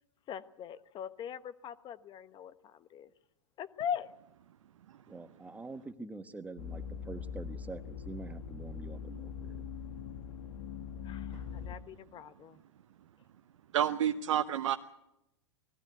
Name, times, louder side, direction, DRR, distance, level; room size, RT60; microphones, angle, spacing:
voice 1, 0.3-3.1 3.6-4.1 11.0-12.6, left 8 dB, 30° left, 13 dB, 1.1 m, -41 dB
voice 2, 5.1-9.6, right 3 dB, 10° right, 10 dB, 1.2 m, -45 dB
sound 1, 6.6-11.8, left 7 dB, 80° left, 2.0 m, -42 dB
voice 3, 13.7-14.8, right 10 dB, 70° right, 7 dB, 0.9 m, -29 dB
19.5 x 15.0 x 9.3 m, 0.86 s
hypercardioid pair, 115°, 16 cm